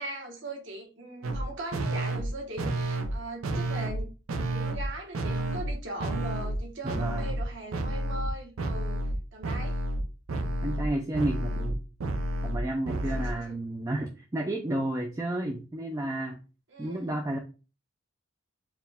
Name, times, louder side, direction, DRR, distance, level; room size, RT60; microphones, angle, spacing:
voice 1, 0.0-4.1 4.5-9.0 9.3-9.8 13.1-13.6 16.7-17.2, right 2 dB, 60° right, 1.2 m, -40 dB
sound 1, 1.2-1.4 1.7-2.3 2.6-3.2 3.4-4.0 4.3-4.9 5.1-5.7 6.0-6.6 6.8-7.4 7.7-8.3 8.6-9.2 9.4-13.3, right 1 dB, 80° right, 0.6 m, -30 dB
voice 2, 6.8-7.4 10.6-11.8 12.4-16.4 16.8-17.4, right 1 dB, 15° right, 0.4 m, -31 dB
4.7 x 2.3 x 3.4 m
head